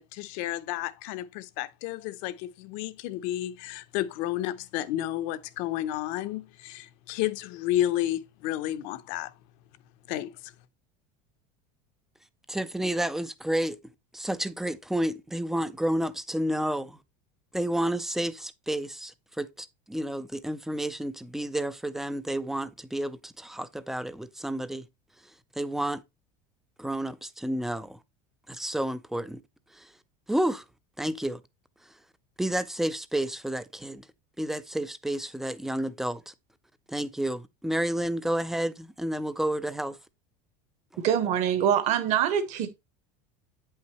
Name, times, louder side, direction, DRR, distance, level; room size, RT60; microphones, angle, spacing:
voice 1, 0.0-9.3 10.1-10.5, left 13 dB, 60° left, 0.7 m, -31 dB
voice 2, 12.5-13.8 14.1-17.0 17.5-24.8 25.6-26.0 26.8-28.0 28.5-29.4 29.7-29.9 30.3-30.6 31.0-31.4 32.4-34.1 34.4-36.3 36.9-40.0, right 1 dB, ahead, 0.4 m, -30 dB
voice 3, 41.0-42.7, right 9 dB, 50° right, 1.4 m, -24 dB
8.7 x 5.6 x 3.0 m
cardioid pair, 155°, 16 cm